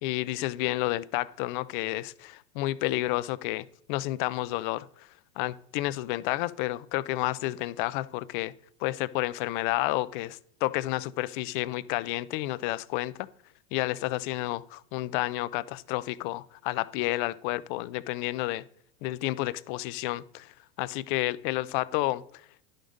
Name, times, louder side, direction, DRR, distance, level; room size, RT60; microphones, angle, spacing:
voice 1, 0.0-5.1 5.4-8.5 8.8-13.3 13.7-18.6 19.0-22.2, left 17 dB, 50° left, 0.4 m, -30 dB
11.0 x 5.1 x 3.9 m
supercardioid pair, 130°, 33 cm